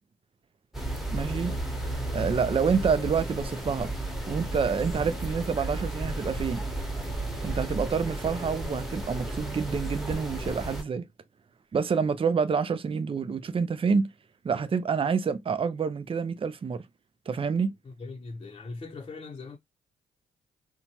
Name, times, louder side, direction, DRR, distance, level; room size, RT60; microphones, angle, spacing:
sound 1, 0.7-10.8, right 1 dB, ahead, 1.1 m, -33 dB
voice 1, 1.1-1.5 2.1-3.9 4.3-6.6 7.4-11.1 11.7-14.1 14.4-16.8 17.3-17.7, right 5 dB, 30° right, 0.5 m, -27 dB
voice 2, 1.8-2.4 17.8-19.6, left 3 dB, 30° left, 0.7 m, -41 dB
2.8 x 2.2 x 2.9 m
supercardioid pair, 55°, 18 cm